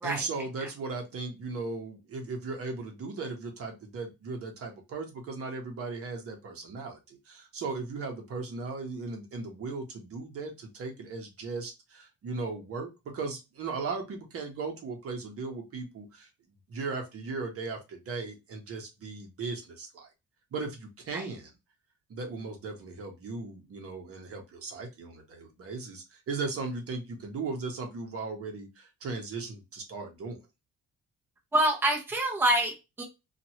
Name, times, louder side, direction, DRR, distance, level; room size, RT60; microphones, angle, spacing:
voice 1, 0.0-16.3 16.7-20.1 20.5-21.5 22.1-30.4, right 4 dB, 45° right, 3 dB, 1.0 m, -37 dB
voice 2, 31.5-33.0, right 1 dB, 5° right, -1 dB, 0.7 m, -26 dB
2.9 x 2.5 x 2.8 m, 0.24 s
cardioid pair, 170°, 33 cm